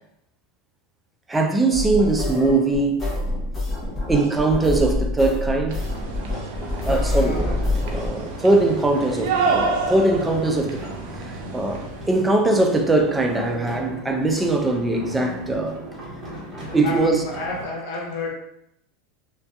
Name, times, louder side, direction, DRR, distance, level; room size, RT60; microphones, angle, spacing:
voice 1, 1.3-3.0 4.1-5.8 6.8-10.8 11.3-15.8 16.7-17.2, right 2 dB, 10° right, 0.4 m, -21 dB
sound 1, 1.7-8.1, left 2 dB, 25° left, 0.8 m, -26 dB
sound 2, 5.7-12.2, right 4 dB, 70° right, 0.5 m, -29 dB
sound 3, 6.7-17.7, equal, 30° right, 1.3 m, -38 dB
voice 2, 6.9-7.6 16.8-18.3, left 3 dB, 65° left, 1.0 m, -31 dB
2.5 x 2.3 x 2.2 m
hypercardioid pair, 110°, 0 cm